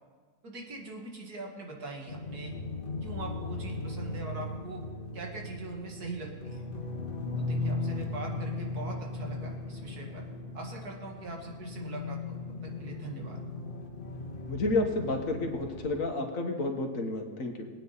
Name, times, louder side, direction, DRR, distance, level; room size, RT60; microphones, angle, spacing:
voice 1, 0.4-2.5 3.0-4.8 5.1-6.7 7.4-10.3 10.5-12.4 12.6-13.4, right 3 dB, 85° right, 0 dB, 2.6 m, -42 dB
sound 1, 2.1-16.0, left 2 dB, 35° left, 1.7 m, -37 dB
voice 2, 14.5-17.7, left 2 dB, 60° left, 3 dB, 1.9 m, -30 dB
20.5 x 9.2 x 4.1 m, 1.5 s
omnidirectional pair, 1.6 m